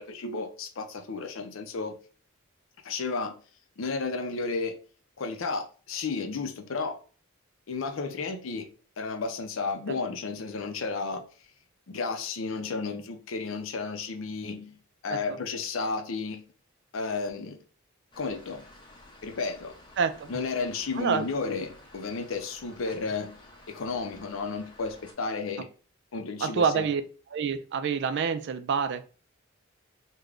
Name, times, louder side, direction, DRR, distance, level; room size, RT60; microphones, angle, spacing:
voice 1, 0.0-2.0 2.8-3.4 3.8-4.8 5.2-7.0 7.7-8.7 9.0-11.3 11.9-14.8 15.0-16.4 16.9-17.6 18.2-18.6 19.2-19.8 20.3-23.4 23.7-25.7 26.1-26.9, left 4 dB, 70° left, 0.5 m, -33 dB
sound 1, 18.1-25.1, left 1 dB, 20° left, 0.7 m, -53 dB
voice 2, 20.0-20.3 21.0-21.2 22.9-23.0 26.4-27.0 27.3-29.1, right 6 dB, 60° right, 0.4 m, -27 dB
3.3 x 2.2 x 3.7 m
head